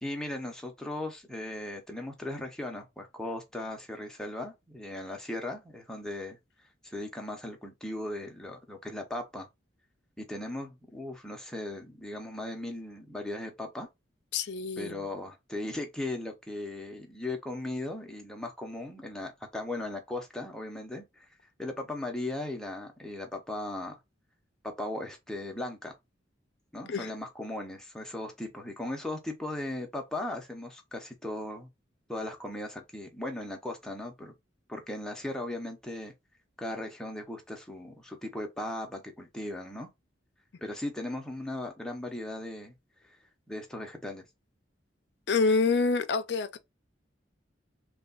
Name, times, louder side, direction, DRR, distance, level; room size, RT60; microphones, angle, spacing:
voice 1, 0.0-6.4 6.8-9.5 10.2-13.9 14.8-21.3 21.6-24.0 24.6-25.9 26.7-31.7 32.1-34.3 34.7-36.1 36.6-39.9 40.6-42.7 43.0-43.2 43.5-44.3, left 1 dB, 5° left, 0.7 m, -37 dB
voice 2, 14.3-15.0 26.9-27.1 45.3-46.6, left 4 dB, 65° left, 0.5 m, -27 dB
3.3 x 2.3 x 3.9 m
head